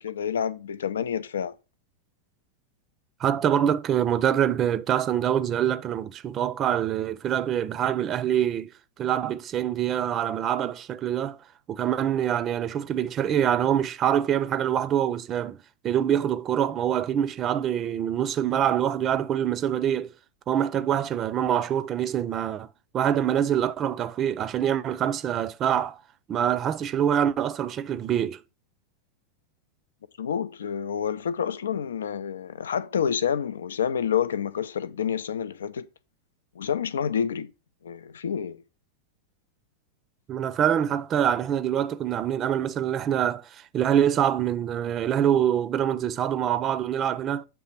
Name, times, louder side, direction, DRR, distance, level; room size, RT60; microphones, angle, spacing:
voice 1, 0.0-1.5 30.2-35.9 36.6-37.5 37.8-38.6, left 8 dB, 65° left, 0.4 m, -28 dB
voice 2, 3.2-8.7 9.0-11.4 11.7-15.6 15.8-20.1 20.5-22.7 22.9-26.0 26.3-28.4 40.3-47.5, right 10 dB, 30° right, 0.5 m, -25 dB
7.5 x 3.2 x 5.7 m
figure-of-eight pair, 90°, 0 cm